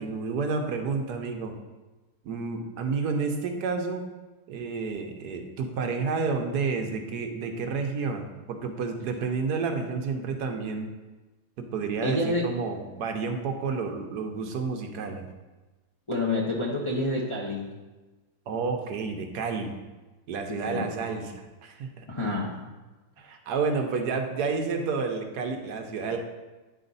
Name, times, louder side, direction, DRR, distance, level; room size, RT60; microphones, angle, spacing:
voice 1, 0.0-1.5 2.2-4.0 4.5-10.9 11.6-15.3 18.5-19.8 20.3-22.1 23.2-26.2, right 4 dB, 75° right, 4 dB, 1.3 m, -30 dB
voice 2, 12.0-12.5 16.1-17.7 20.5-20.9 22.1-22.6, left 2 dB, 30° left, -4 dB, 0.6 m, -28 dB
9.7 x 4.1 x 4.0 m, 1.2 s
omnidirectional pair, 1.8 m